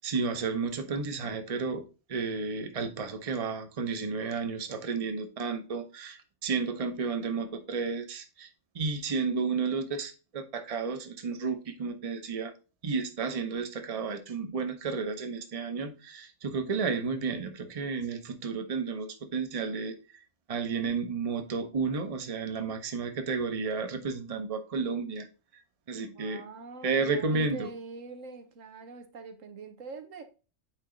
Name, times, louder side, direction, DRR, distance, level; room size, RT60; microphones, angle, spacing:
voice 1, 0.0-8.5 8.7-12.5 12.8-20.2 20.5-25.3 25.9-26.4 26.8-27.7, right 4 dB, 35° right, 0.8 m, -32 dB
voice 2, 26.0-30.2, right 3 dB, 90° right, 1.4 m, -44 dB
8.8 x 3.0 x 3.8 m
omnidirectional pair, 1.3 m